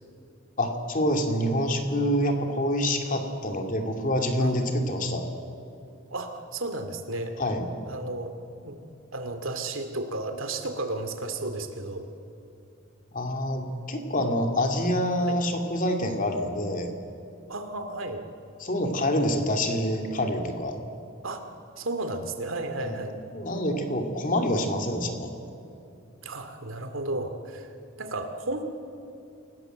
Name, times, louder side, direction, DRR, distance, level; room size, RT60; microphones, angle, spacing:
voice 1, 0.6-5.3 7.4-7.6 13.1-16.9 18.6-20.8 22.8-23.0 23.3-25.3, left 1 dB, 40° left, 4 dB, 2.6 m, -26 dB
voice 2, 4.4-4.9 6.1-7.3 7.8-8.4 8.6-8.8 9.1-12.1 15.2-15.4 17.5-18.2 21.2-21.4 21.8-23.2 26.2-27.7 28.0-28.6, right 2 dB, 80° right, 7 dB, 2.4 m, -33 dB
27.5 x 18.0 x 8.0 m, 2.7 s
head